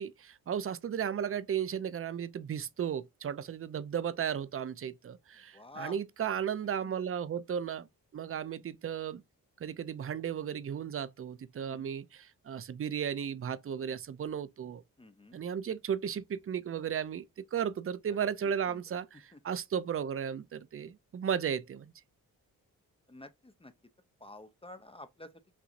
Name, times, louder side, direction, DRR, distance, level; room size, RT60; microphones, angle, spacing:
voice 1, 0.0-7.9 8.1-9.2 9.6-14.8 15.3-21.9, right 8 dB, 35° right, 0.5 m, -35 dB
voice 2, 5.5-6.0 6.8-6.9 11.6-11.9 15.0-15.4 18.4-18.8 19.3-19.4 23.1-23.7 24.2-25.3, left 2 dB, 15° left, 0.6 m, -49 dB
5.9 x 2.6 x 2.5 m
cardioid pair, 55°, 37 cm